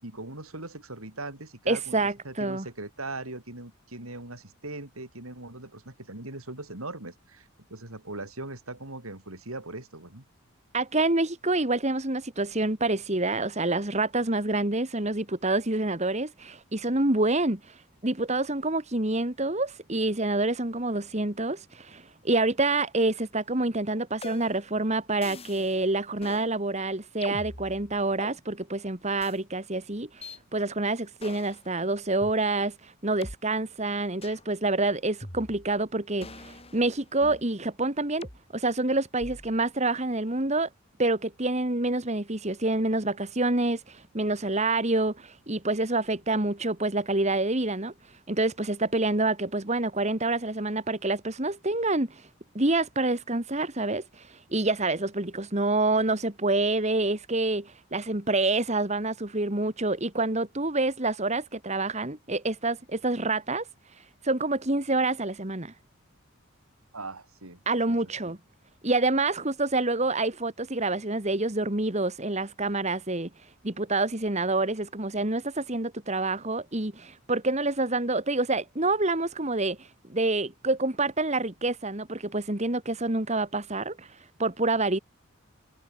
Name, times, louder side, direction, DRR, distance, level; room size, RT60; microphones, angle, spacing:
voice 1, 0.0-10.2 66.9-67.6 67.9-68.4, right 2 dB, 80° right, 5.5 m, -40 dB
voice 2, 1.7-2.7 10.7-17.7 18.0-30.2 30.5-38.3 38.5-40.7 41.0-47.9 48.3-52.3 52.5-63.7 64.2-65.7 67.7-68.4 68.8-73.3 73.6-84.1 84.4-85.0, right 2 dB, 30° right, 2.0 m, -27 dB
sound 1, 24.2-24.7 25.2-25.8 26.2-26.5 27.2-28.4 29.2-29.4 30.2-30.4 31.2-31.6 32.2-32.3 33.2-33.4 34.2-34.5 35.2-35.8 36.2-37.5 38.2-38.4 39.2-39.6, left 2 dB, 25° left, 3.9 m, -43 dB
head